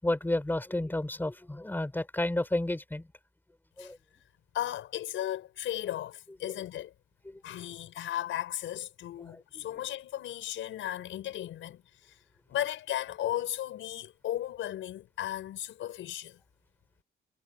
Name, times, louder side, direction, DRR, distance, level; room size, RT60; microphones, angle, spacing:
voice 1, 0.0-3.1 3.8-4.0 6.4-6.5 7.2-7.4 9.2-9.6, left 1 dB, 10° left, 4.3 m, -32 dB
voice 2, 4.5-6.9 7.4-12.2 12.5-16.4, left 12 dB, 80° left, 6.0 m, -35 dB
cardioid pair, 90°, 20 cm